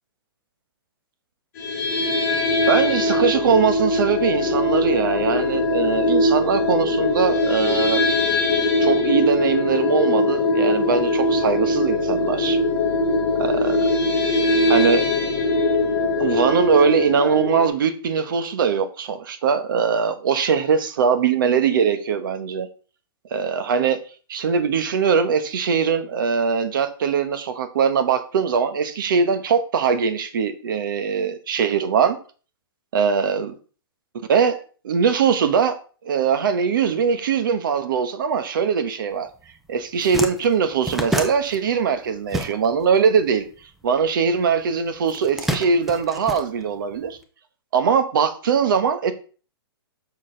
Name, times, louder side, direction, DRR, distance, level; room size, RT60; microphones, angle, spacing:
sound 1, 1.6-17.7, left 2 dB, 40° left, 2.1 m, -21 dB
voice 1, 2.7-8.0 8.8-12.6 13.4-13.8 14.7-15.0 16.2-22.7 23.3-24.0 24.3-32.2 32.9-33.5 34.3-34.6 34.8-35.7 36.0-39.3 39.7-43.4 43.8-47.2 47.7-49.1, right 6 dB, 55° right, 9 dB, 1.2 m, -21 dB
sound 2, 39.4-39.5 39.8-43.0 43.2-44.4 45.0-47.1, right 1 dB, ahead, 0.4 m, -29 dB
6.5 x 6.4 x 3.9 m, 0.38 s
hypercardioid pair, 170°, 13 cm